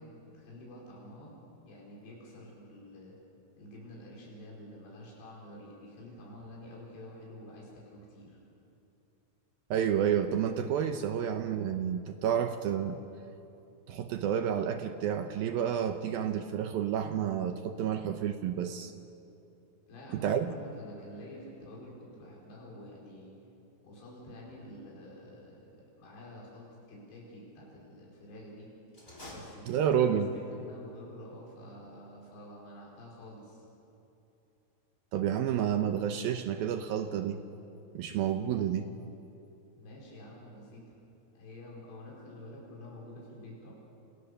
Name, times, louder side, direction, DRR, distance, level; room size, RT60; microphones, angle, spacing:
voice 1, 0.0-1.4 1.7-3.2 3.6-8.4 19.9-23.3 23.8-28.7 29.3-33.7 39.8-40.9 41.3-43.7, left 1 dB, 85° left, -4 dB, 7.3 m, -48 dB
voice 2, 9.7-13.0 13.9-18.9 20.1-20.5 29.7-30.3 35.1-37.4 37.9-38.9, right 9 dB, 75° right, 7 dB, 2.4 m, -30 dB
sound 1, 28.9-30.3, left 1 dB, 20° left, 5.7 m, -48 dB
30.0 x 28.5 x 6.9 m, 2.9 s
omnidirectional pair, 4.9 m